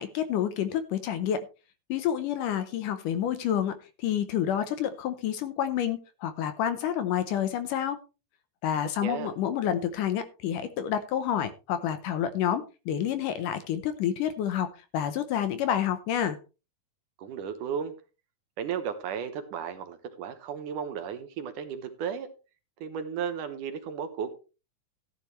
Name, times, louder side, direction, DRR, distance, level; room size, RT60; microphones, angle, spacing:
voice 1, 0.0-1.5 1.9-8.0 8.6-16.4, left 10 dB, 75° left, 11 dB, 2.2 m, -29 dB
voice 2, 17.2-17.9 18.6-22.3 22.8-24.4, right 7 dB, 70° right, 9 dB, 2.4 m, -34 dB
14.0 x 10.5 x 3.2 m, 0.31 s
omnidirectional pair, 4.2 m